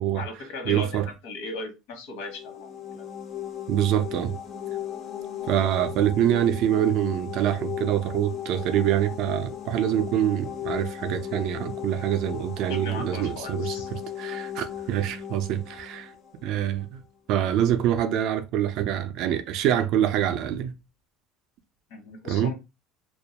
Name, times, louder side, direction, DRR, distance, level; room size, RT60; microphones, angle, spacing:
voice 1, 0.1-3.1 12.7-13.9 21.9-22.5, left 3 dB, 75° left, 0.9 m, -37 dB
voice 2, 0.7-1.1 3.7-4.4 5.5-13.8 14.2-16.1 16.4-17.0 17.3-20.7 22.3-22.5, right 11 dB, 45° right, 0.3 m, -25 dB
sound 1, 2.2-16.9, left 9 dB, 30° left, 0.3 m, -37 dB
2.2 x 2.1 x 2.8 m
cardioid pair, 170°, 0 cm